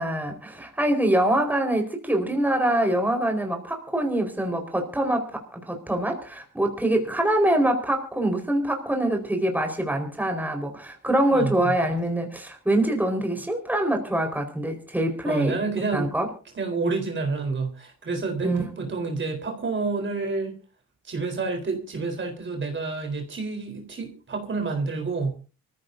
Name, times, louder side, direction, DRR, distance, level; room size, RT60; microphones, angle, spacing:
voice 1, 0.0-16.3 18.4-18.6, right 1 dB, 5° right, 3 dB, 4.6 m, -24 dB
voice 2, 11.3-11.7 15.2-16.1 16.6-20.6 21.0-25.4, right 4 dB, 40° right, 3 dB, 4.0 m, -29 dB
24.5 x 15.0 x 2.7 m, 0.35 s
cardioid pair, 90°, 30 cm